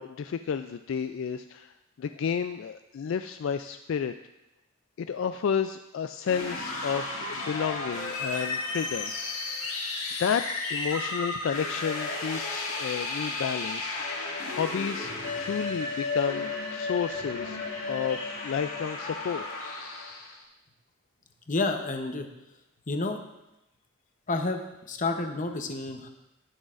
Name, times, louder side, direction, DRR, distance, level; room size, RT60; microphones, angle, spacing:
voice 1, 0.0-4.1 5.0-9.1 9.6-9.7 10.2-10.4 10.7-14.0 14.5-15.1 15.4-17.6 17.9-19.4, left 7 dB, 65° left, 9 dB, 0.3 m, -31 dB
sound 1, 6.2-20.4, left 3 dB, 85° left, 1.9 m, -33 dB
voice 2, 21.5-22.3 22.9-23.2 24.3-24.6 24.9-26.1, left 3 dB, 40° left, 5 dB, 0.8 m, -29 dB
19.0 x 6.3 x 2.5 m, 0.94 s
head